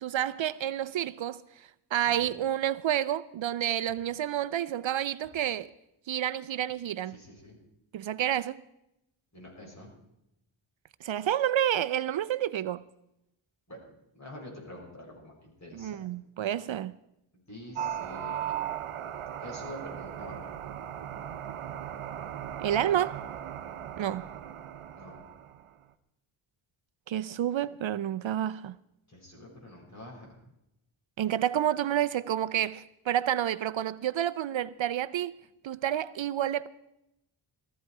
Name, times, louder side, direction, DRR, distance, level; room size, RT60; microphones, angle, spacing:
voice 1, 0.0-1.4 1.9-5.7 6.1-7.2 7.9-8.6 11.0-12.8 15.8-16.9 22.6-23.2 24.0-24.3 27.1-28.7 31.2-35.3 35.6-36.7, right 11 dB, 65° right, 0.6 m, -29 dB
voice 2, 7.1-7.6 9.3-9.9 13.7-13.9 14.1-16.1 17.5-18.5 19.4-20.6 25.0-25.3 29.1-30.4, left 1 dB, 35° left, 5.9 m, -46 dB
sound 1, 17.7-25.7, right 10 dB, 85° right, 0.9 m, -38 dB
18.0 x 14.0 x 4.7 m
wide cardioid pair, 130°, 50 cm